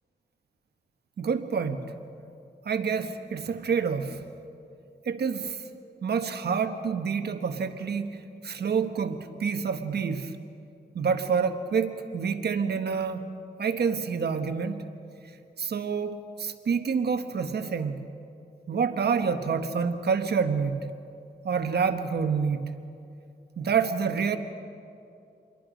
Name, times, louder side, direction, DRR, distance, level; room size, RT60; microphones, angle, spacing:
voice 1, 1.2-1.9 2.6-4.2 5.0-5.6 6.0-8.2 8.4-10.3 10.9-13.2 13.6-14.8 15.6-18.0 18.7-20.9 21.4-22.7 23.6-24.4, right 6 dB, 75° right, 8 dB, 1.3 m, -27 dB
27.0 x 21.5 x 5.2 m, 2.6 s
wide cardioid pair, 110°, 17 cm